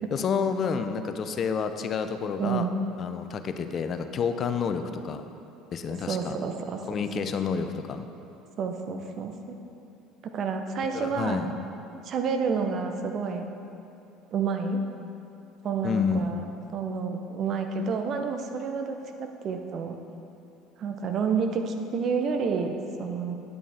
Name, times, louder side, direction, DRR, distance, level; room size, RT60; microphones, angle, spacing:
voice 1, 0.1-2.7 3.0-5.2 5.7-6.4 6.9-8.1 10.9-11.5 15.8-16.3, left 6 dB, 45° left, 8 dB, 0.5 m, -29 dB
voice 2, 2.4-2.7 6.1-6.8 8.6-9.6 10.2-11.4 12.0-13.5 14.3-14.8 15.6-16.5 16.7-20.0 20.8-22.7 23.0-23.4, right 5 dB, 50° right, 5 dB, 0.8 m, -29 dB
9.2 x 8.4 x 3.5 m, 2.8 s
hypercardioid pair, 65°, 0 cm